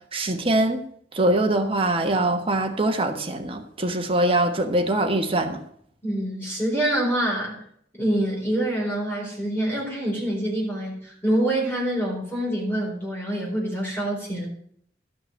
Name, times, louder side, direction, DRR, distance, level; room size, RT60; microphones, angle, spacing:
voice 1, 0.1-0.8 1.1-5.6, right 1 dB, 30° right, 5 dB, 1.3 m, -23 dB
voice 2, 6.0-7.6 8.0-14.5, right 1 dB, 10° left, -4 dB, 4.2 m, -26 dB
13.0 x 6.0 x 6.4 m, 0.64 s
head